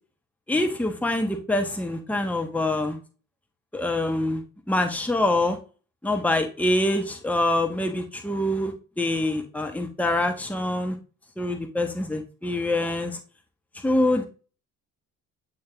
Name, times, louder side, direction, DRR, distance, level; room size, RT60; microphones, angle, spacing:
voice 1, 0.5-3.0 3.7-5.6 6.0-11.0 11.4-13.2 13.8-14.2, left 1 dB, 5° left, 5 dB, 1.4 m, -25 dB
8.5 x 3.8 x 3.6 m, 0.34 s
hypercardioid pair, 55°, 43 cm